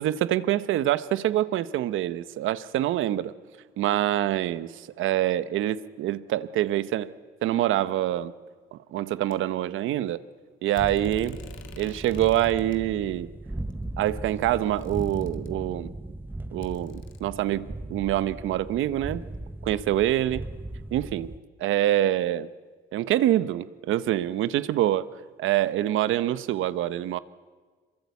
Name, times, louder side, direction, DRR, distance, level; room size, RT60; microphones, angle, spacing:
voice 1, 0.0-3.3 3.8-7.1 7.4-8.3 8.7-10.2 10.6-11.4 11.8-13.3 14.0-15.9 16.5-19.2 19.6-20.5 20.9-21.3 21.6-22.5 22.9-25.1 25.4-27.2, right 13 dB, 85° right, 15 dB, 1.0 m, -25 dB
sound 1, 9.3-9.4 10.8-12.8 13.7-13.8 14.1-15.8 16.6-17.2, left 8 dB, 75° left, 1.9 m, -51 dB
sound 2, 10.8-21.4, right 2 dB, 10° right, 1.1 m, -38 dB
26.0 x 22.5 x 8.4 m, 1.5 s
cardioid pair, 90°, 20 cm